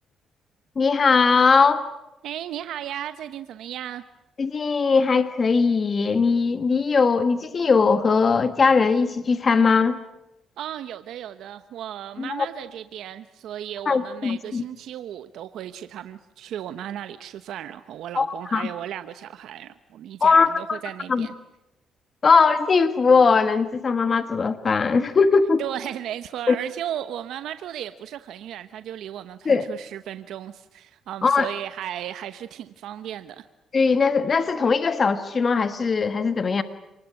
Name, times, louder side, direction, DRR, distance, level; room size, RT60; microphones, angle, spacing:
voice 1, 0.8-1.9 4.4-10.0 12.2-12.5 13.9-14.6 18.2-18.3 18.5-18.7 20.2-20.8 21.1-21.3 22.2-25.6 26.5-26.6 29.4-29.6 31.2-31.5 33.7-36.6, left 5 dB, 40° left, 11 dB, 1.4 m, -20 dB
voice 2, 2.2-4.0 10.6-21.3 25.6-33.5, right 11 dB, 80° right, 11 dB, 0.9 m, -35 dB
28.5 x 20.0 x 9.9 m, 0.97 s
cardioid pair, 90°, 0 cm